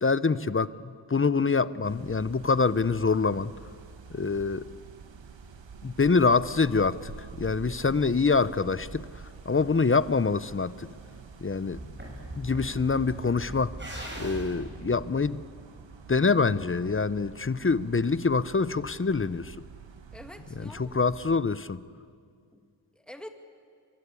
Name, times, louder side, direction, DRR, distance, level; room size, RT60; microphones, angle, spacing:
voice 1, 0.0-3.5 4.1-4.7 5.8-7.1 7.4-9.1 9.4-10.9 11.4-11.8 12.3-13.7 14.2-15.4 16.1-19.6 20.6-21.8, left 4 dB, 30° left, 16 dB, 0.8 m, -25 dB
sound 1, 1.8-21.4, right 5 dB, 75° right, 1.7 m, -47 dB
sound 2, 11.7-15.9, right 1 dB, 25° right, 7.5 m, -40 dB
voice 2, 20.1-21.0 22.5-23.3, equal, ahead, 5 dB, 2.3 m, -46 dB
27.5 x 23.5 x 8.5 m, 2.1 s
cardioid pair, 65°, 44 cm